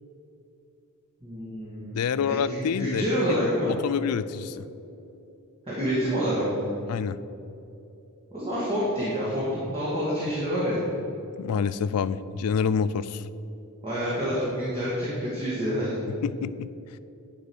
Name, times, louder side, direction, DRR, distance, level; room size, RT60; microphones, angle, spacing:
voice 1, 1.2-3.7 5.7-6.7 8.3-10.8 13.8-16.0, equal, 25° right, -9 dB, 2.2 m, -28 dB
voice 2, 1.9-3.4 3.7-4.7 6.9-7.2 11.4-13.2 16.2-16.7, left 6 dB, 80° left, 16 dB, 0.4 m, -27 dB
10.5 x 5.1 x 6.3 m, 2.8 s
head